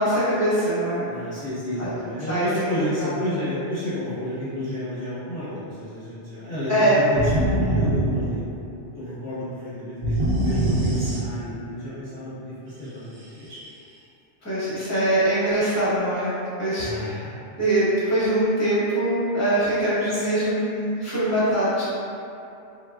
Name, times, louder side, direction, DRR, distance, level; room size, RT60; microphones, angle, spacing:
voice 1, 0.0-1.1 1.8-1.9 2.3-2.5 3.0-3.1 6.7-7.0 14.4-16.3 16.6-17.2 17.5-21.8, right 1 dB, 15° left, -11 dB, 0.8 m, -22 dB
voice 2, 1.1-8.5 8.9-13.6 16.8-17.3 20.0-20.2, left 1 dB, 45° left, -14 dB, 0.8 m, -31 dB
sound 1, 7.2-8.9 10.0-11.7, right 1 dB, 75° right, 0.9 m, -24 dB
3.2 x 2.3 x 2.3 m, 2.6 s
omnidirectional pair, 1.2 m